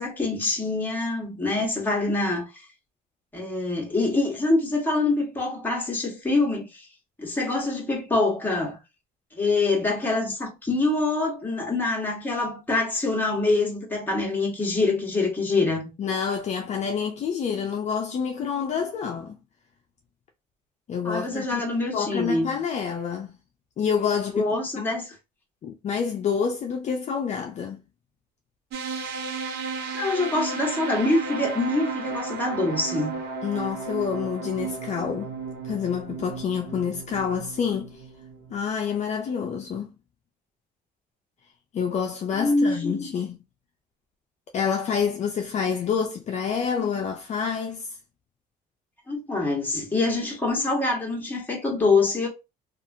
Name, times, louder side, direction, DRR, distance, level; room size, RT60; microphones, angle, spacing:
voice 1, 0.0-2.6 3.3-6.9 7.2-8.8 9.4-15.9 21.0-22.6 24.3-25.1 29.9-33.2 42.3-43.1 49.1-52.3, left 2 dB, 10° left, 1.3 m, -25 dB
voice 2, 16.0-19.4 20.9-23.4 23.8-24.5 24.8-24.9 25.6-27.8 33.4-35.3 35.6-38.0 38.5-39.9 41.7-43.4 44.5-48.0, left 7 dB, 45° left, 0.5 m, -28 dB
sound 1, 28.7-38.5, right 4 dB, 75° right, 0.8 m, -34 dB
2.9 x 2.4 x 2.6 m
cardioid pair, 110°, 17 cm